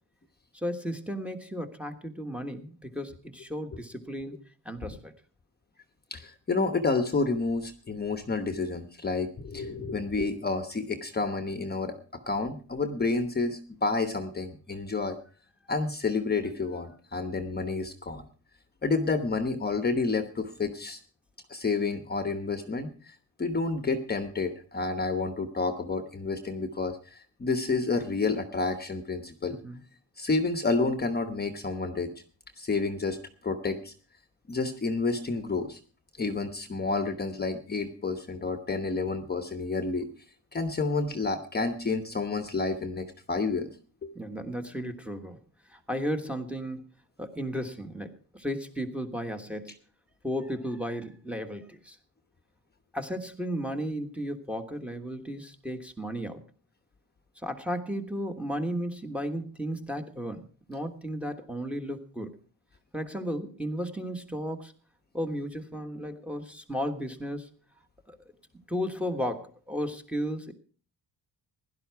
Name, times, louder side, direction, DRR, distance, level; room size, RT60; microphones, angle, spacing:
voice 1, 0.5-4.4 4.6-5.1 29.6-29.8 44.1-45.4 45.7-46.8 47.2-49.7 50.2-52.0 52.9-56.4 57.4-62.4 62.9-64.7 65.1-67.5 68.1-68.2 68.7-70.5, equal, 5° right, 4 dB, 1.4 m, -34 dB
voice 2, 6.1-12.0 12.3-15.2 15.7-18.2 18.8-21.0 21.5-29.6 30.2-32.1 32.6-33.2 33.4-33.9 34.5-35.8 36.2-40.1 40.5-43.7 44.0-44.1, left 3 dB, 25° left, 7 dB, 1.1 m, -29 dB
16.5 x 11.5 x 4.7 m, 0.41 s
cardioid pair, 155°, 40 cm